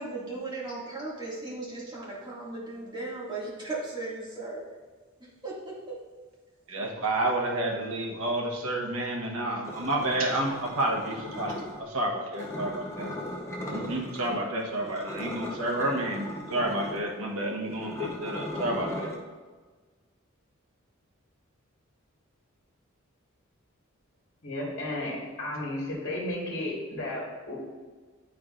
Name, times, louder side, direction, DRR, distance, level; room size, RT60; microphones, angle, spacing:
voice 1, 0.0-4.6 5.4-6.0, right 2 dB, 20° right, -7 dB, 1.8 m, -37 dB
voice 2, 6.7-13.1 13.6-19.1, right 1 dB, 80° right, 0 dB, 1.0 m, -30 dB
sound 1, 9.6-11.8 12.3-14.4 14.7-19.2, left 1 dB, 15° left, 0.8 m, -38 dB
voice 3, 24.4-27.6, left 1 dB, 55° left, -4 dB, 1.4 m, -33 dB
9.0 x 4.7 x 2.4 m, 1.4 s
head